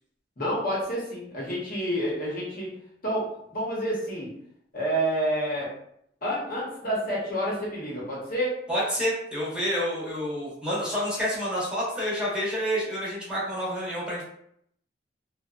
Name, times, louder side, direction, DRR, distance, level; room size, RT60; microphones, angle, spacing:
voice 1, 0.4-2.7 3.0-4.3 4.7-5.7 6.2-8.6, equal, 50° left, -5 dB, 1.0 m, -29 dB
voice 2, 8.7-14.3, equal, 5° right, -7 dB, 0.9 m, -28 dB
2.6 x 2.2 x 2.3 m, 0.71 s
head